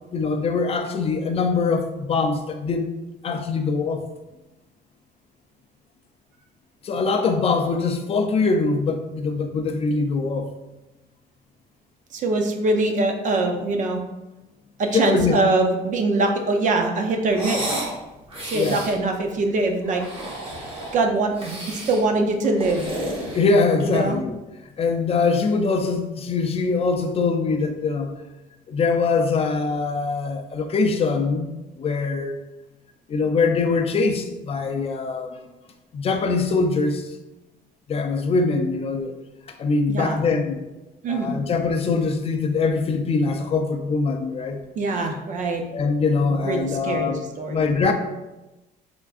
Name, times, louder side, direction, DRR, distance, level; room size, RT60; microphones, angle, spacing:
voice 1, 0.1-2.9 3.2-4.0 6.8-10.5 14.9-15.4 18.5-18.9 23.3-24.3 24.8-28.2 28.7-31.5 31.8-32.4 33.1-35.4 35.9-37.1 37.9-39.1 39.6-40.6 41.1-44.6 45.7-47.9, left 4 dB, 35° left, 6 dB, 0.5 m, -23 dB
voice 2, 12.1-14.0 14.8-17.8 18.5-20.0 20.9-22.9 23.8-24.2 39.9-40.2 41.0-41.4 44.8-45.6 46.2-47.7, right 2 dB, 50° right, 3 dB, 0.6 m, -23 dB
sound 1, 17.3-17.9 18.3-19.0 19.8-21.0 21.4-22.0 22.4-24.0, right 1 dB, 35° right, 1.3 m, -32 dB
3.7 x 3.5 x 2.4 m, 1.0 s
cardioid pair, 110°, 17 cm